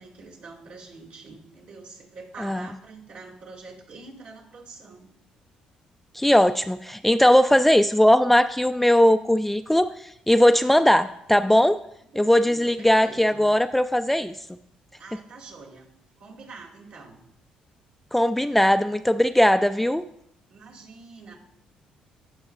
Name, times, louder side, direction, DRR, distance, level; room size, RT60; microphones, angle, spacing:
voice 1, 0.0-5.2 12.1-13.4 15.0-15.9 16.2-17.2 20.5-21.3, right 3 dB, 70° right, -2 dB, 2.4 m, -45 dB
voice 2, 6.1-9.9 10.3-11.8 12.2-14.3 18.1-20.0, left 1 dB, 5° left, 10 dB, 0.3 m, -19 dB
15.5 x 5.2 x 2.4 m, 0.74 s
supercardioid pair, 70°, 3 cm